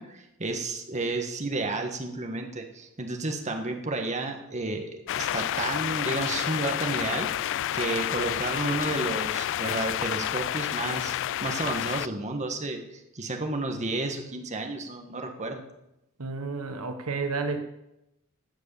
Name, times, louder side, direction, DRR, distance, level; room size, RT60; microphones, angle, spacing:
voice 1, 0.0-11.2 11.4-12.8 13.1-15.6, right 2 dB, 35° right, 4 dB, 1.5 m, -31 dB
sound 1, 5.1-12.1, left 12 dB, 60° left, 0.3 m, -29 dB
voice 2, 16.2-17.6, right 4 dB, 80° right, 7 dB, 1.1 m, -31 dB
13.0 x 6.6 x 8.2 m, 0.89 s
head